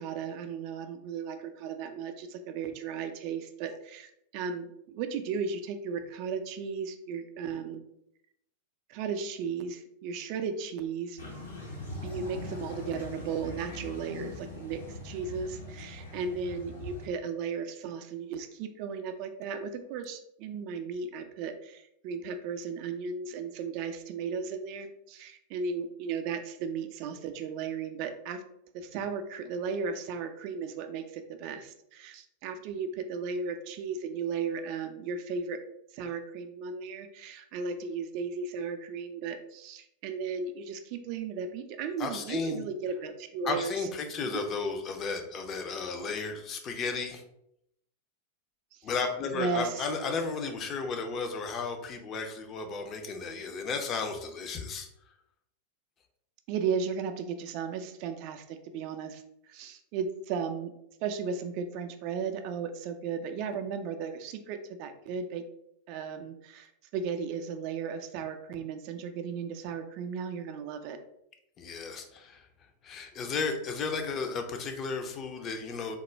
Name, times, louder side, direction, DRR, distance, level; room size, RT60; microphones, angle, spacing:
voice 1, 0.0-7.8 8.9-11.2 12.0-28.4 28.7-35.6 35.9-43.7 44.2-44.4 49.3-49.9 56.5-60.7 61.0-65.4 65.9-71.0, right 5 dB, 45° right, 8 dB, 0.4 m, -35 dB
sound 1, 11.2-17.1, left 2 dB, 75° left, 0.8 m, -41 dB
voice 2, 42.0-42.6 43.5-47.2 48.8-54.9 71.6-72.5 72.8-76.0, left 4 dB, 30° left, 5 dB, 0.5 m, -34 dB
3.5 x 2.1 x 3.1 m, 0.78 s
figure-of-eight pair, 90°, 0 cm